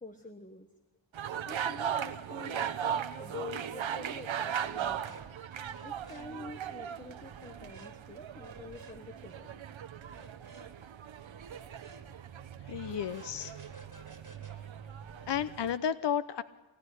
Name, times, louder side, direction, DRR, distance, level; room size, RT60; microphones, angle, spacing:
voice 1, 0.0-0.7 1.4-5.2 5.8-9.6, left 3 dB, 15° left, 6 dB, 1.4 m, -47 dB
sound 1, 1.1-15.8, right 9 dB, 80° right, 1.2 m, -38 dB
sound 2, 4.6-5.3 5.6-6.3 7.3-8.0 8.3-9.0 10.0-10.7 11.4-12.1 12.7-15.4, right 4 dB, 40° right, 2.7 m, -53 dB
voice 2, 12.6-13.6 15.3-16.4, left 8 dB, 65° left, 13 dB, 0.9 m, -32 dB
25.0 x 18.5 x 10.0 m, 1.1 s
wide cardioid pair, 135°, 46 cm